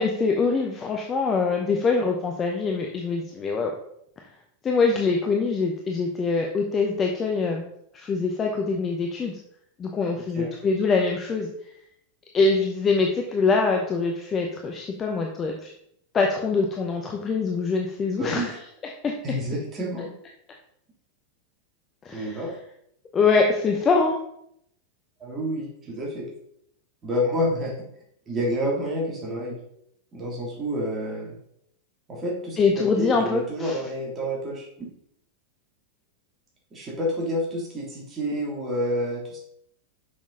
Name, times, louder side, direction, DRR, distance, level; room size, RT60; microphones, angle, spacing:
voice 1, 0.0-3.7 4.6-7.6 7.9-9.4 9.8-11.5 12.3-15.7 16.1-18.5 19.0-19.1 22.0-22.4 23.1-24.2 32.6-33.7, left 4 dB, 25° left, 2 dB, 0.8 m, -24 dB
voice 2, 18.2-18.6 19.2-20.1 22.1-22.5 25.2-26.3 27.0-27.7 28.3-29.6 30.1-31.4 32.1-34.9 36.7-39.4, equal, 20° right, -3 dB, 2.4 m, -29 dB
6.2 x 6.1 x 3.8 m, 0.72 s
figure-of-eight pair, 90°, 0 cm